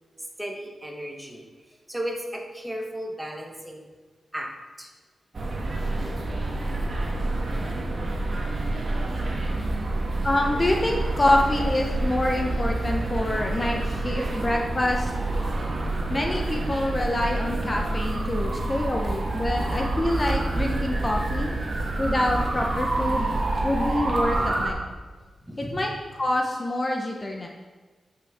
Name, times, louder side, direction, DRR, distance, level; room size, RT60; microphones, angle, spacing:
voice 1, 0.4-1.5 1.9-3.8 4.3-4.5 4.8-4.9 24.4-24.5 25.4-25.8, equal, 10° right, 1 dB, 1.3 m, -34 dB
sound 1, 5.3-24.7, right 2 dB, 45° right, 1.4 m, -27 dB
voice 2, 10.2-15.1 16.1-21.5 22.0-23.3 23.6-24.7 25.6-27.5, left 1 dB, 30° left, 1 dB, 0.9 m, -26 dB
13.0 x 5.9 x 3.7 m, 1.3 s
wide cardioid pair, 95°, 0 cm